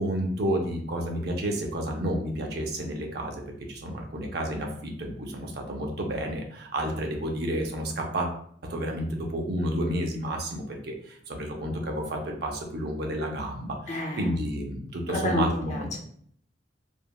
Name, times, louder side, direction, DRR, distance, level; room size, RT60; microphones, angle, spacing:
voice 1, 0.0-3.4 3.7-8.3 8.6-15.9, right 1 dB, 55° right, 2 dB, 0.5 m, -30 dB
voice 2, 13.9-14.3 15.1-16.0, left 2 dB, 40° left, 0 dB, 0.5 m, -30 dB
3.3 x 2.1 x 2.2 m, 0.62 s
head